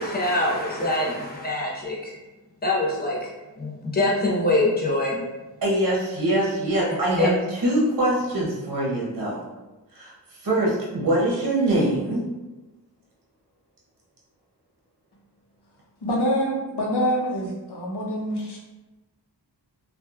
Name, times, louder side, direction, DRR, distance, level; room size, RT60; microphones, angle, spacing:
voice 1, 0.0-2.1 2.6-3.3 3.6-5.2 7.1-7.3, left 2 dB, 20° left, -4 dB, 0.7 m, -24 dB
voice 2, 5.6-9.4 9.9-10.1 10.4-12.2, right 1 dB, 50° right, -5 dB, 0.7 m, -23 dB
voice 3, 16.0-18.6, equal, 65° left, -3 dB, 0.8 m, -25 dB
2.9 x 2.2 x 2.3 m, 1.1 s
wide cardioid pair, 55°, 42 cm